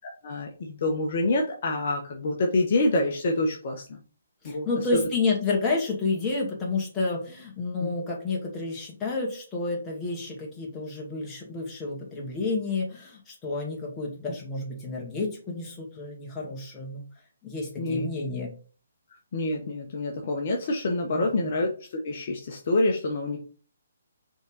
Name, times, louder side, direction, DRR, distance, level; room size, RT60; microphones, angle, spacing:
voice 1, 0.2-4.0 4.4-5.0 7.8-7.9 17.8-18.1 19.3-23.4, left 2 dB, 45° left, 1 dB, 1.1 m, -27 dB
voice 2, 4.4-17.0 17.4-18.5 21.1-21.5, left 3 dB, 15° left, -3 dB, 2.1 m, -30 dB
5.2 x 3.9 x 4.7 m, 0.40 s
figure-of-eight pair, 135°, 0 cm